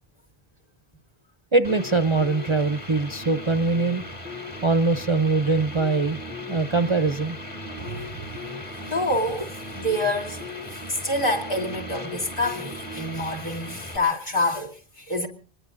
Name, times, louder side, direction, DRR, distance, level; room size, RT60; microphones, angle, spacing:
voice 1, 1.5-4.0 4.6-6.2 6.5-7.4, right 3 dB, 30° right, 0.8 m, -22 dB
sound 1, 1.6-14.0, left 1 dB, 30° left, 2.0 m, -37 dB
voice 2, 7.8-15.3, left 1 dB, 55° left, 3.1 m, -28 dB
26.0 x 20.5 x 2.6 m
omnidirectional pair, 1.0 m